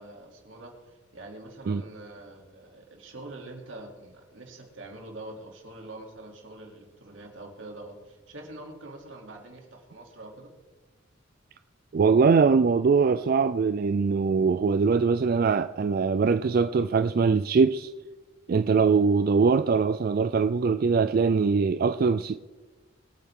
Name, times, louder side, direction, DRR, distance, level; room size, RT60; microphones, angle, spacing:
voice 1, 0.0-10.5, right 2 dB, 80° right, 2.9 m, -44 dB
voice 2, 11.9-17.9 18.5-22.3, right 5 dB, 50° right, 0.3 m, -22 dB
24.5 x 9.2 x 3.7 m
head